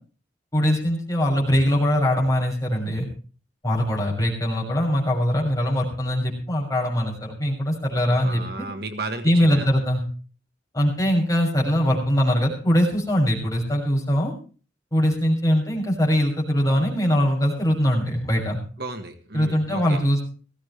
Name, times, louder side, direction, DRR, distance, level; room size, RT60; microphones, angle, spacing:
voice 1, 0.5-3.1 3.6-8.6 9.2-10.0 10.7-14.3 14.9-18.6 19.3-20.2, equal, 20° left, -2 dB, 6.2 m, -22 dB
voice 2, 8.2-9.7 18.8-20.0, right 2 dB, 60° right, 6 dB, 1.6 m, -33 dB
19.0 x 15.5 x 3.3 m, 0.38 s
head